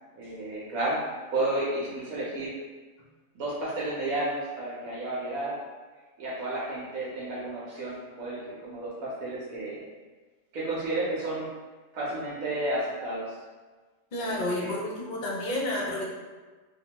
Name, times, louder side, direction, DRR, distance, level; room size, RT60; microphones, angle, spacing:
voice 1, 0.1-1.0 1.3-2.5 3.3-5.6 6.2-9.8 10.5-11.5 11.9-13.3 14.2-14.7, right 2 dB, 75° right, -6 dB, 1.1 m, -32 dB
voice 2, 14.1-16.1, left 1 dB, 65° left, -4 dB, 0.4 m, -30 dB
2.7 x 2.2 x 2.8 m, 1.3 s
omnidirectional pair, 1.5 m